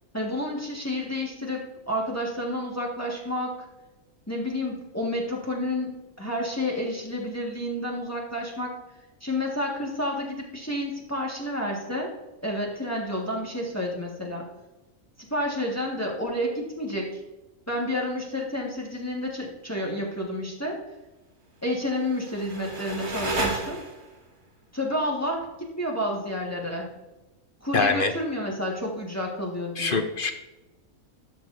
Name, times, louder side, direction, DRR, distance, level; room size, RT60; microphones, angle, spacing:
voice 1, 0.1-3.6 4.3-5.9 6.2-8.8 9.2-12.1 12.4-14.4 15.3-17.1 17.7-20.8 21.6-23.8 24.7-26.9 27.6-30.0, left 1 dB, 10° left, -2 dB, 1.5 m, -30 dB
sound 1, 21.9-24.2, right 2 dB, 50° right, 2.0 m, -32 dB
voice 2, 27.7-28.1 29.8-30.3, left 4 dB, 50° left, 7 dB, 0.7 m, -24 dB
13.0 x 6.1 x 2.6 m, 1.0 s
omnidirectional pair, 1.5 m